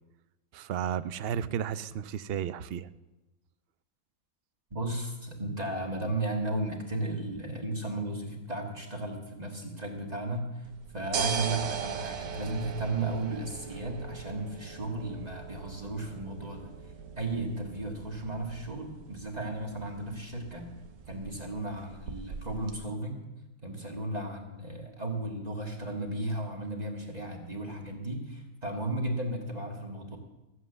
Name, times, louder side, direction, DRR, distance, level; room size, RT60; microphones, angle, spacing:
voice 1, 0.5-2.9, right 9 dB, 60° right, 13 dB, 0.6 m, -33 dB
voice 2, 4.7-16.7 17.2-20.7 21.1-23.2 23.6-30.2, right 2 dB, 30° right, 1 dB, 1.7 m, -35 dB
sound 1, 10.7-22.8, right 6 dB, 75° right, 1.3 m, -40 dB
14.5 x 7.6 x 7.8 m, 1.0 s
omnidirectional pair, 1.5 m